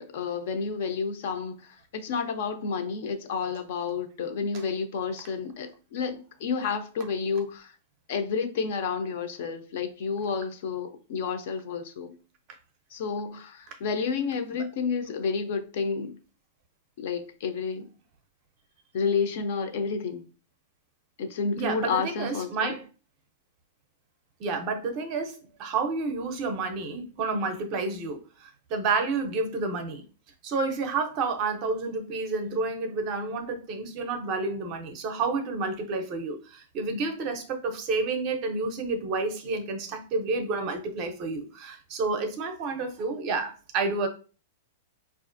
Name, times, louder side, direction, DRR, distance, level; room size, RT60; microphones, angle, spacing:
voice 1, 0.0-7.8 8.1-12.2 12.9-16.2 17.0-17.9 18.9-20.2 21.2-22.7, left 5 dB, 45° left, 0.5 m, -30 dB
voice 2, 21.6-22.8 24.4-30.0 30.4-44.1, right 3 dB, 30° right, 0.5 m, -30 dB
4.9 x 2.4 x 2.5 m
supercardioid pair, 175°, 0 cm